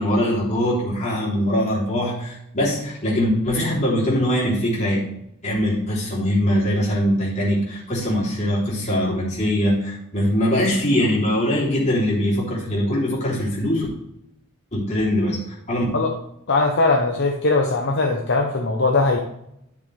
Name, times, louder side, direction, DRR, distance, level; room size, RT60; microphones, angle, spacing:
voice 1, 0.0-5.0 5.4-13.9 14.7-15.4 15.7-15.8, equal, 30° left, -6 dB, 3.4 m, -22 dB
voice 2, 16.5-19.2, left 3 dB, 55° left, 0 dB, 1.0 m, -20 dB
11.5 x 6.6 x 3.4 m, 0.78 s
head